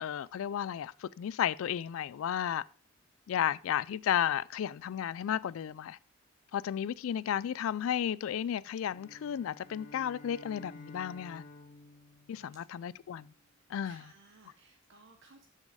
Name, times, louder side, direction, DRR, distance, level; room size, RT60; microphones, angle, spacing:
voice 1, 0.0-2.6 3.3-6.0 6.5-11.4 12.3-13.3 13.7-14.0, left 9 dB, 75° left, 0.3 m, -33 dB
sound 1, 8.9-13.4, left 2 dB, 40° left, 1.2 m, -53 dB
voice 2, 13.8-15.4, right 3 dB, 60° right, 1.0 m, -59 dB
7.6 x 6.3 x 4.9 m
head